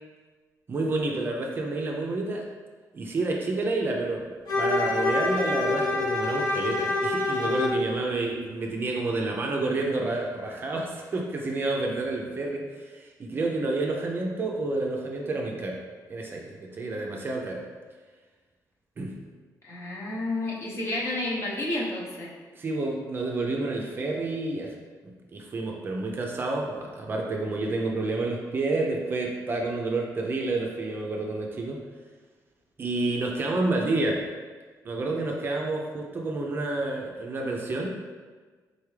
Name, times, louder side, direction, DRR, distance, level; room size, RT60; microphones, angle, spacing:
voice 1, 0.7-2.4 2.9-4.3 4.6-12.6 12.9-15.8 16.1-17.6 19.0-19.1 22.6-24.7 25.3-31.8 32.8-34.2 34.8-37.9, right 2 dB, 30° right, 0 dB, 0.5 m, -29 dB
Bowed string instrument, 4.5-7.9, left 2 dB, 80° left, 0.9 m, -26 dB
voice 2, 19.6-22.3, left 2 dB, 40° left, -4 dB, 0.9 m, -30 dB
4.0 x 3.4 x 3.2 m, 1.4 s
cardioid pair, 145°, 7 cm